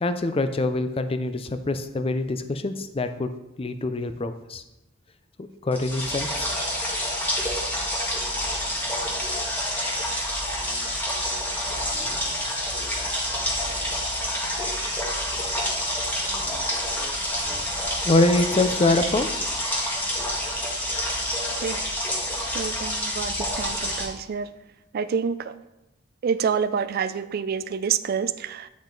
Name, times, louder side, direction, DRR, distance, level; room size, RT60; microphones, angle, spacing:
voice 1, 0.0-3.3 3.6-4.6 5.4-6.5 18.0-19.3, left 2 dB, 30° left, 9 dB, 0.5 m, -24 dB
sound 1, 5.7-24.1, equal, 10° left, 1.6 m, -28 dB
sound 2, 9.0-20.1, equal, 20° right, 1.9 m, -45 dB
voice 2, 21.5-21.9 22.5-24.5 24.9-25.6 26.2-28.7, right 6 dB, 50° right, 15 dB, 0.3 m, -28 dB
8.8 x 5.3 x 3.9 m, 0.95 s
head